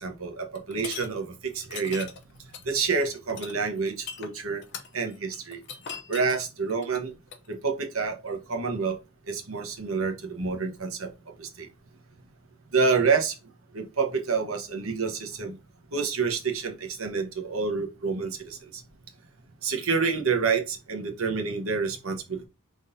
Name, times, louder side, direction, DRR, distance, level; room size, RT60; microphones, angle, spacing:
voice 1, 0.0-1.3 1.5-2.1 2.6-4.6 4.9-5.6 6.1-7.1 7.5-9.0 9.3-11.1 11.4-11.7 12.7-13.3 13.7-15.6 15.9-18.8 19.6-22.5, right 5 dB, 75° right, 4 dB, 1.1 m, -28 dB
sound 1, 0.5-1.1 1.6-7.5, left 7 dB, 55° left, 0.7 m, -40 dB
5.1 x 3.8 x 2.6 m, 0.27 s
head